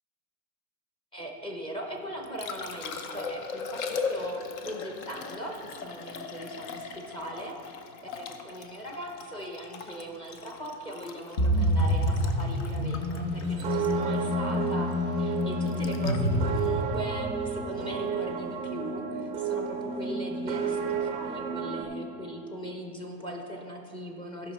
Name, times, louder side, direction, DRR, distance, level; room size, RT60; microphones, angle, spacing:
voice 1, 1.1-7.7 8.1-24.5, equal, 10° left, 1 dB, 0.7 m, -39 dB
Liquid, 2.0-18.1 20.9-21.0, left 4 dB, 65° left, 0.9 m, -40 dB
sound 1, 11.4-17.3, left 1 dB, 45° left, 1.4 m, -28 dB
sound 2, 13.4-21.8, right 6 dB, 15° right, 0.4 m, -32 dB
14.0 x 5.9 x 4.2 m, 2.6 s
supercardioid pair, 165°, 43 cm